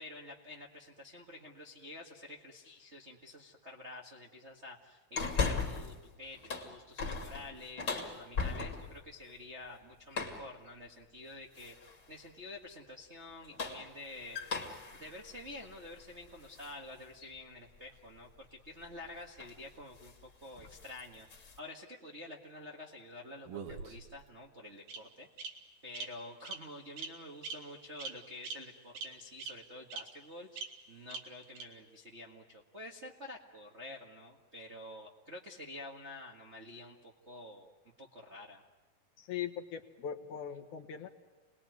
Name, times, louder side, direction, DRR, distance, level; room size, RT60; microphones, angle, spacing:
voice 1, 0.0-14.6 14.9-25.6 25.8-37.7 38.0-38.6, left 2 dB, 30° right, -1 dB, 1.3 m, -49 dB
sound 1, 5.2-6.0 6.3-9.0 10.1-10.5 11.6-12.0 13.3-16.7 17.2-17.3 18.8-19.1 19.4-19.6 20.0-20.2 20.5-21.6, left 4 dB, 35° left, 2.9 m, -38 dB
Bird vocalization bird call bird song, 23.5-24.2 24.9-25.0 25.4-25.5 25.9-26.0 26.4-26.6 27.0-27.1 27.4-27.5 28.0-28.1 28.4-28.5 29.0-29.1 29.4-29.5 29.9-30.0 30.6-30.7 31.1-31.2 31.6-31.7, right 4 dB, 80° right, 3.9 m, -40 dB
voice 2, 39.2-41.1, left 8 dB, 65° left, 3 dB, 2.8 m, -40 dB
29.5 x 20.5 x 9.4 m, 1.2 s
omnidirectional pair, 4.1 m